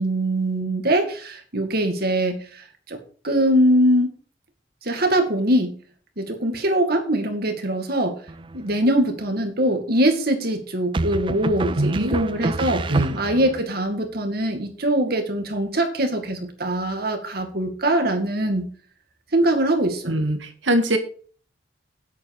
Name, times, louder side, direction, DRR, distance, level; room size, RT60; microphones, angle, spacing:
voice 1, 0.0-2.4 2.9-3.0 3.2-4.1 4.8-5.7 6.2-8.2 8.5-18.7 19.3-20.1, right 1 dB, 55° right, 6 dB, 2.2 m, -22 dB
sound 1, 8.3-8.9 10.9-13.6, right 2 dB, 25° right, 0.4 m, -28 dB
voice 2, 11.8-12.2 12.9-13.2 20.1-21.0, right 1 dB, 80° right, 7 dB, 1.8 m, -22 dB
9.8 x 8.4 x 4.9 m, 0.44 s
head